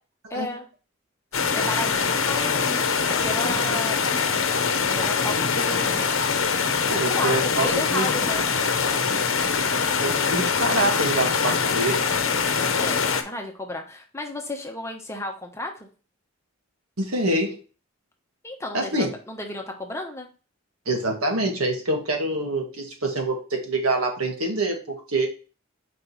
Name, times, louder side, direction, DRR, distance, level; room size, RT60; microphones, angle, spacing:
voice 1, 0.3-0.7 1.5-4.1 4.9-6.1 7.1-8.5 12.8-15.9 18.4-20.3, left 2 dB, 15° left, 3 dB, 1.0 m, -33 dB
sound 1, 1.3-13.2, left 5 dB, 70° left, 0.9 m, -23 dB
voice 2, 6.9-8.1 10.0-12.2 17.0-17.6 18.7-19.1 20.9-25.3, right 2 dB, 85° right, 1 dB, 1.8 m, -26 dB
5.1 x 3.3 x 5.6 m, 0.35 s
head